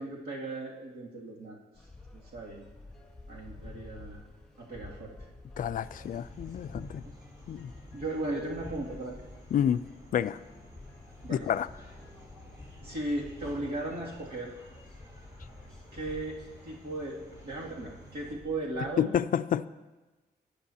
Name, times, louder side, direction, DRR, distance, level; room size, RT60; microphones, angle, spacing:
voice 1, 0.0-1.6 2.1-2.7 3.3-4.2 4.6-5.1 7.0-7.1 7.9-9.2 11.2-11.5 12.8-14.5 15.9-19.1, right 2 dB, 65° right, -4 dB, 2.4 m, -36 dB
sound 1, 1.7-19.1, left 2 dB, 5° left, 2.4 m, -50 dB
voice 2, 5.6-7.0 7.5-7.7 9.5-9.8 10.1-10.4 11.3-11.7 19.0-19.7, left 9 dB, 55° left, 14 dB, 0.4 m, -29 dB
sound 2, 5.8-18.3, left 1 dB, 20° right, 3.2 m, -52 dB
19.0 x 9.7 x 2.8 m, 1.2 s
wide cardioid pair, 140°, 17 cm